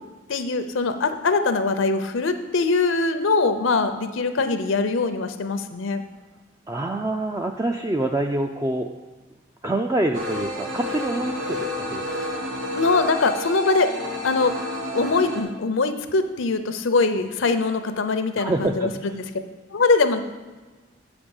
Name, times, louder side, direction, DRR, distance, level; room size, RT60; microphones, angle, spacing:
voice 1, 0.3-6.0 12.8-13.9 14.2-14.5 14.9-18.9 19.7-20.2, left 3 dB, 85° left, 9 dB, 0.6 m, -22 dB
voice 2, 6.7-8.9 9.6-12.0 18.4-19.2, right 2 dB, 15° right, 4 dB, 0.3 m, -26 dB
sound 1, 10.1-15.4, left 1 dB, 70° right, 1.3 m, -30 dB
7.1 x 5.1 x 7.0 m, 1.3 s
head